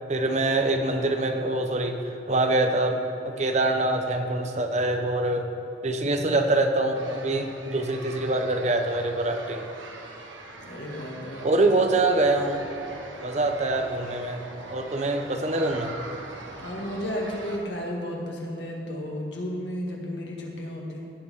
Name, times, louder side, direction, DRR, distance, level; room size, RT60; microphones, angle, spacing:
voice 1, 0.1-2.0 2.3-3.0 3.2-5.4 5.8-9.7 11.4-12.6 13.2-14.4 14.7-15.9, right 2 dB, 35° right, 5 dB, 0.8 m, -24 dB
sound 1, 6.9-17.6, right 2 dB, 80° right, 1.3 m, -42 dB
voice 2, 10.6-11.5 16.6-21.1, equal, 65° left, -2 dB, 1.9 m, -33 dB
16.5 x 8.3 x 3.6 m, 2.8 s
head